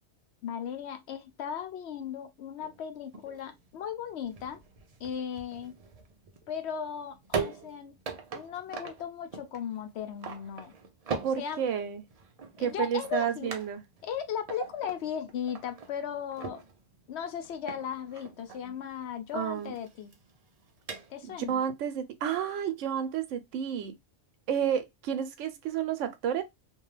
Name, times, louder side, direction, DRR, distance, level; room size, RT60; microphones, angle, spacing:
voice 1, 0.4-4.6 5.0-5.7 6.5-8.0 8.3-10.7 11.4-11.6 12.6-13.5 14.0-16.6 17.1-20.1 21.1-21.6, left 8 dB, 70° left, 0.8 m, -37 dB
sound 1, 2.6-21.5, right 5 dB, 55° right, 0.4 m, -42 dB
voice 2, 11.2-12.0 12.6-13.8 19.3-19.7 21.5-24.0 24.5-26.4, right 8 dB, 90° right, 0.9 m, -31 dB
2.5 x 2.3 x 3.1 m
omnidirectional pair, 1.2 m